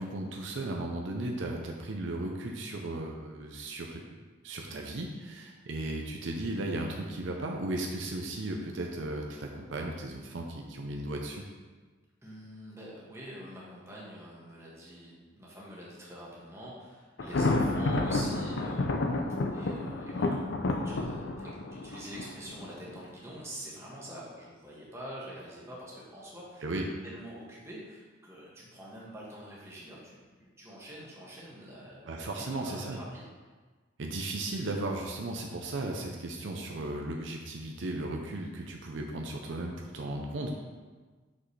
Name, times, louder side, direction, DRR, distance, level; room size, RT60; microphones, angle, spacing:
voice 1, 0.0-4.0 4.4-11.5 26.6-26.9 32.1-33.0 34.0-40.6, right 2 dB, 70° right, 1 dB, 0.6 m, -36 dB
voice 2, 12.2-26.6 27.0-33.3, equal, 15° right, -6 dB, 1.4 m, -46 dB
Thunder, 17.2-23.0, left 2 dB, 65° left, 0.5 m, -30 dB
6.0 x 5.5 x 3.3 m, 1.4 s
head